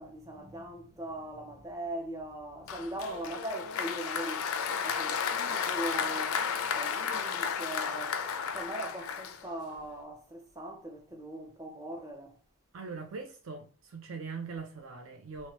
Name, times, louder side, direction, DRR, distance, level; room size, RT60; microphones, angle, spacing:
voice 1, 0.0-4.4 4.8-6.4 6.7-8.2 8.5-12.3, right 1 dB, 15° right, 0.5 m, -40 dB
Applause, 2.7-9.8, left 6 dB, 70° left, 0.4 m, -33 dB
voice 2, 12.7-15.5, right 4 dB, 65° right, 0.4 m, -41 dB
3.1 x 2.1 x 2.9 m
head